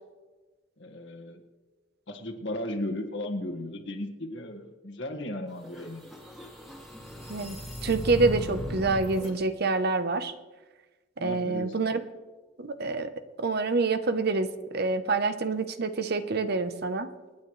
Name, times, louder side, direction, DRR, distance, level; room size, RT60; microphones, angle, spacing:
voice 1, 0.8-1.4 2.1-6.0 11.2-11.7, left 1 dB, 70° left, 3 dB, 1.8 m, -35 dB
sound 1, 5.6-9.3, left 1 dB, ahead, 2.3 m, -37 dB
voice 2, 7.3-10.3 11.2-12.1 12.6-17.1, right 3 dB, 60° right, 11 dB, 0.9 m, -27 dB
28.0 x 9.4 x 3.2 m, 1.3 s
head